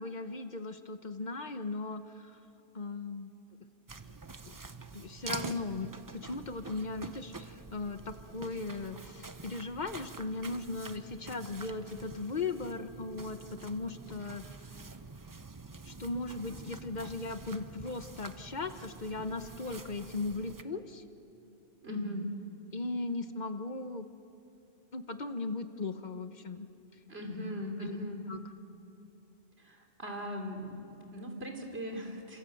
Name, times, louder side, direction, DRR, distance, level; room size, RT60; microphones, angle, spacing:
voice 1, 0.0-2.4 2.7-3.3 4.5-4.6 4.9-14.4 15.9-21.0 21.9-22.2 22.7-24.1 24.9-26.7 27.8-28.0 28.3-28.4, left 3 dB, 40° left, 9 dB, 1.1 m, -38 dB
sound 1, 3.9-20.6, right 3 dB, 20° right, 0.6 m, -47 dB
voice 2, 21.8-22.3 27.1-28.2 29.6-32.4, equal, 60° right, 3 dB, 3.5 m, -39 dB
28.0 x 25.5 x 7.9 m, 2.8 s
omnidirectional pair, 1.2 m